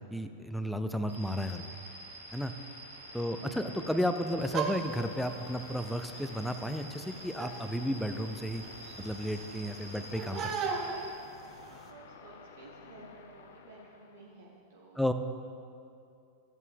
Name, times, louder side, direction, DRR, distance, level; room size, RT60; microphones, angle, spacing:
voice 1, 0.0-1.6 2.3-2.5 3.1-8.6 9.0-10.7 15.0-15.1, equal, ahead, 9 dB, 0.5 m, -33 dB
sound 1, 1.1-11.1, equal, 85° right, 2.6 m, -48 dB
sound 2, 2.9-14.4, left 6 dB, 60° left, 0.6 m, -53 dB
sound 3, 4.4-11.9, right 5 dB, 30° right, 0.9 m, -40 dB
voice 2, 11.7-15.1, right 3 dB, 60° right, -3 dB, 1.2 m, -53 dB
14.0 x 8.1 x 3.6 m, 2.5 s
figure-of-eight pair, 90°, 0 cm